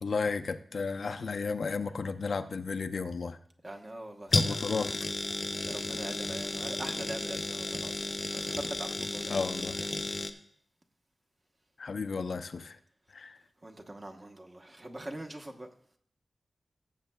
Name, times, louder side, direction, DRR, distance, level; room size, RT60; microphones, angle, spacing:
voice 1, 0.0-3.4 4.3-4.9 9.3-9.8 11.8-12.8 13.1-13.4, left 4 dB, 65° left, 8 dB, 0.5 m, -33 dB
voice 2, 3.6-4.6 5.7-8.0 8.3-9.5 9.8-9.9 13.6-15.7, right 1 dB, 30° right, 3 dB, 1.0 m, -43 dB
sound 1, 4.3-10.3, left 2 dB, 35° left, 0.7 m, -33 dB
18.0 x 7.3 x 2.3 m, 0.65 s
wide cardioid pair, 105°, 0 cm